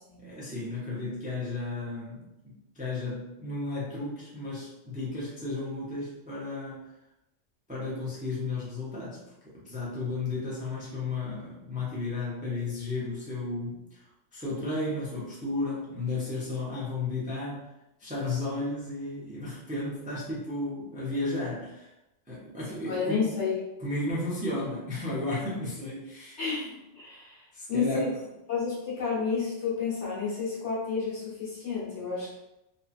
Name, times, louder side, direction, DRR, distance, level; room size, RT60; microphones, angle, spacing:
voice 1, 0.2-2.2 2.7-6.9 7.7-9.2 9.5-14.0 14.3-17.7 18.0-21.9 22.3-23.3 23.8-26.4 27.5-28.2, left 2 dB, 10° right, -7 dB, 0.5 m, -33 dB
voice 2, 22.9-23.6 26.4-27.4 27.7-28.1 28.5-32.4, left 5 dB, 70° left, -7 dB, 1.4 m, -30 dB
2.8 x 2.5 x 2.4 m, 0.93 s
omnidirectional pair, 1.2 m